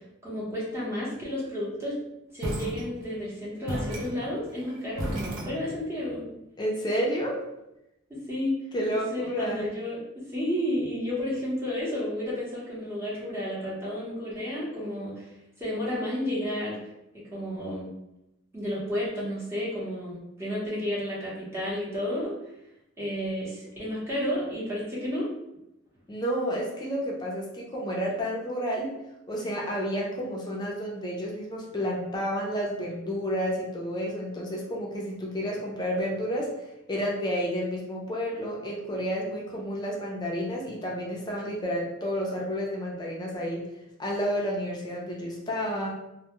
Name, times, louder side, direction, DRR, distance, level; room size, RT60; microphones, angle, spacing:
voice 1, 0.2-2.0 2.3-6.2 8.1-8.5 8.8-10.0 10.3-15.3 15.6-16.8 17.1-17.9 18.5-22.3 23.0-25.3, left 1 dB, 15° right, -8 dB, 0.8 m, -31 dB
sound 1, 2.4-3.3 3.7-6.0, right 1 dB, 70° right, 0.5 m, -34 dB
voice 2, 6.6-7.4 8.7-9.7 26.1-28.9 29.3-36.5 36.9-43.6 44.0-45.9, equal, 20° left, -3 dB, 0.5 m, -30 dB
2.2 x 2.1 x 2.9 m, 0.89 s
head